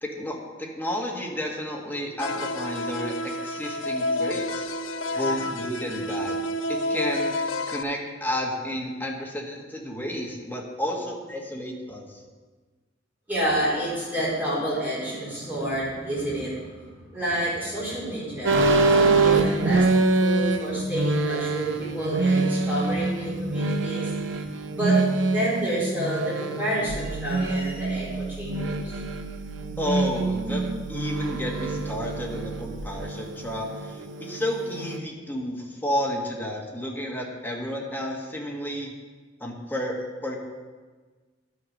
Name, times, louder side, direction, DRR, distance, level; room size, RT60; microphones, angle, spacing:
voice 1, 0.0-4.7 5.1-6.4 6.7-7.3 7.7-12.2 29.8-38.9 39.4-40.4, left 1 dB, 10° left, -1 dB, 1.6 m, -31 dB
sound 1, 2.2-7.8, left 1 dB, 85° left, 0.6 m, -29 dB
voice 2, 13.3-24.1 24.7-29.0, right 1 dB, 10° right, -8 dB, 4.2 m, -29 dB
sound 2, 18.4-35.0, right 3 dB, 80° right, 0.8 m, -25 dB
sound 3, 26.9-32.8, right 5 dB, 35° left, 2.5 m, -40 dB
11.5 x 6.3 x 6.4 m, 1.4 s
head